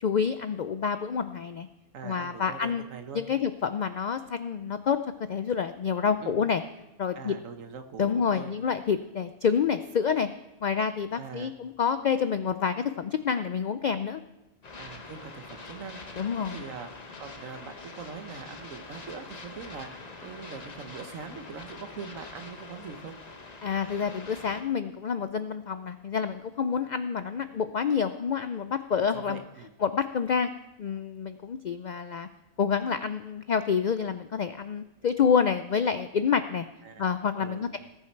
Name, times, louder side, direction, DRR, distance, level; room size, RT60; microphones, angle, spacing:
voice 1, 0.0-1.7 2.0-2.8 3.1-5.0 5.3-6.6 7.0-7.3 8.0-10.3 10.6-14.2 16.2-16.6 23.6-29.4 29.8-30.5 30.8-32.3 32.6-36.7 37.0-37.8, left 6 dB, 80° left, 11 dB, 0.4 m, -28 dB
voice 2, 1.9-3.2 6.2-6.4 7.1-8.6 11.1-11.5 14.8-16.9 17.2-23.1 29.1-29.7 36.8-37.8, right 6 dB, 85° right, 8 dB, 1.4 m, -42 dB
sound 1, 14.6-24.6, left 3 dB, 35° left, 1.1 m, -44 dB
19.0 x 7.1 x 4.5 m, 1.0 s
omnidirectional pair, 1.3 m